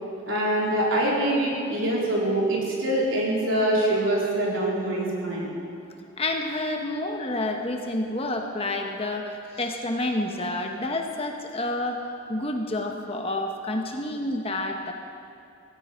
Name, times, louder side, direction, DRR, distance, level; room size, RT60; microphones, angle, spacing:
voice 1, 0.3-5.5, right 1 dB, 65° right, -4 dB, 3.9 m, -24 dB
voice 2, 6.2-12.0 12.3-14.9, left 2 dB, 25° left, 3 dB, 1.1 m, -29 dB
17.0 x 16.0 x 5.2 m, 2.5 s
head